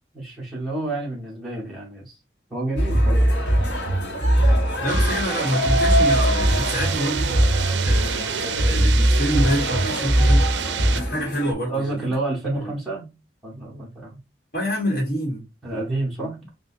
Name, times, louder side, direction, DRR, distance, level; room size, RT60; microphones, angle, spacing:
voice 1, 0.1-2.2 2.5-3.3 11.7-13.1 13.4-14.2 15.6-16.5, right 2 dB, ahead, 1.5 m, -29 dB
sound 1, 2.8-11.5, equal, 80° left, 1.3 m, -20 dB
voice 2, 4.8-7.4 7.8-10.5 10.9-12.2 12.4-12.7 14.5-15.5 16.2-16.3, equal, 55° left, 1.3 m, -27 dB
sound 2, 4.9-11.0, right 9 dB, 75° right, 0.4 m, -30 dB
6.5 x 2.4 x 2.6 m
head